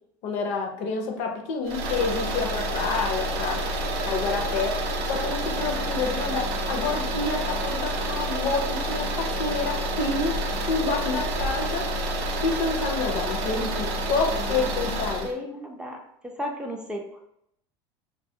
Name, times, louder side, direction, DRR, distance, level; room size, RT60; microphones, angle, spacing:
voice 1, 0.2-3.6 4.1-10.4 10.7-11.9 12.4-15.3, left 4 dB, 60° left, 3 dB, 0.5 m, -28 dB
sound 1, 1.7-15.3, right 1 dB, 70° right, 0.4 m, -28 dB
voice 2, 15.2-16.0 16.2-17.2, left 1 dB, 5° right, 0 dB, 0.4 m, -34 dB
2.2 x 2.1 x 2.6 m, 0.76 s
supercardioid pair, 105°, 13 cm